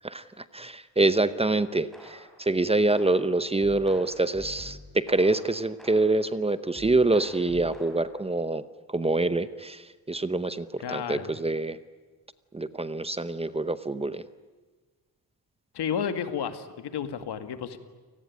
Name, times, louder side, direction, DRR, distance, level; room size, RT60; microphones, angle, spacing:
voice 1, 0.0-8.6 8.9-11.8 12.5-14.2, right 2 dB, 15° right, 13 dB, 0.7 m, -26 dB
sound 1, 1.9-2.4 2.9-6.3 6.7-8.3, left 1 dB, ahead, 5.8 m, -48 dB
voice 2, 10.8-11.3 15.7-17.8, left 8 dB, 80° left, 9 dB, 2.1 m, -31 dB
29.0 x 19.0 x 9.5 m, 1.4 s
wide cardioid pair, 165°, 39 cm